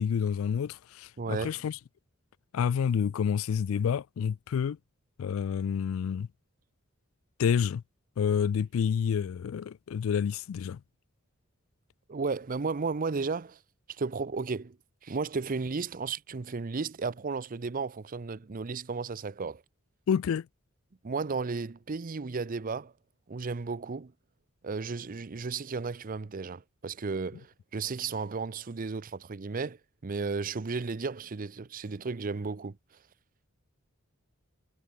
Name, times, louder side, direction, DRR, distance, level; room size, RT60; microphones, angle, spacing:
voice 1, 0.0-1.8 2.5-4.8 5.2-6.3 7.4-7.8 8.2-10.8 20.1-20.5, left 7 dB, 70° left, 0.3 m, -28 dB
voice 2, 1.2-1.5 12.1-13.6 13.9-14.8 15.0-19.6 21.0-22.9 23.3-24.1 24.6-32.8, right 4 dB, 40° right, 0.6 m, -34 dB
head